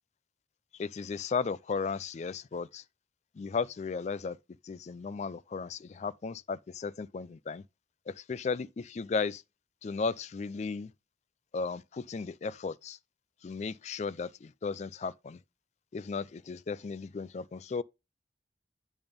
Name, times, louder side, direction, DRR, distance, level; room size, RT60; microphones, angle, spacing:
voice 1, 0.8-2.8 3.4-4.4 4.6-7.6 8.1-9.4 9.8-10.9 11.5-13.0 13.4-15.4 15.9-17.8, left 5 dB, 40° left, 0.3 m, -35 dB
9.0 x 3.5 x 5.2 m
head